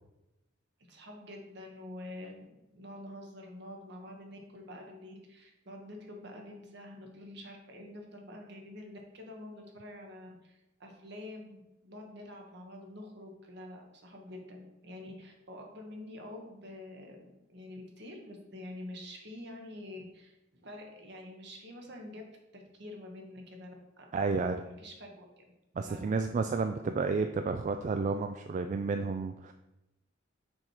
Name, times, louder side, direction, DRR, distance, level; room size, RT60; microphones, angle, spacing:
voice 1, 0.9-20.3 20.6-22.2 22.5-25.5 25.8-26.2, left 1 dB, 60° right, 1 dB, 1.4 m, -47 dB
voice 2, 24.1-24.7 25.8-29.5, right 4 dB, 40° right, 7 dB, 0.3 m, -31 dB
6.2 x 4.4 x 4.8 m, 0.97 s
head